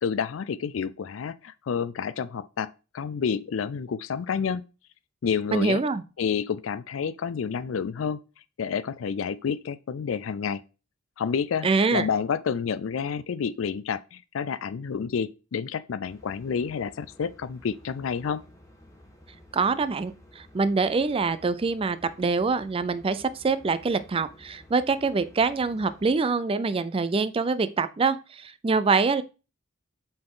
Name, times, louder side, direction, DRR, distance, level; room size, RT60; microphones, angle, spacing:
voice 1, 0.0-4.7 5.2-5.8 6.2-8.2 8.6-10.6 11.2-18.4, left 6 dB, 80° left, 0.4 m, -29 dB
voice 2, 5.5-6.0 11.6-12.1 19.5-29.2, right 4 dB, 30° right, 0.4 m, -25 dB
sound 1, 16.1-26.1, equal, 15° left, 1.4 m, -53 dB
7.7 x 4.2 x 3.7 m
head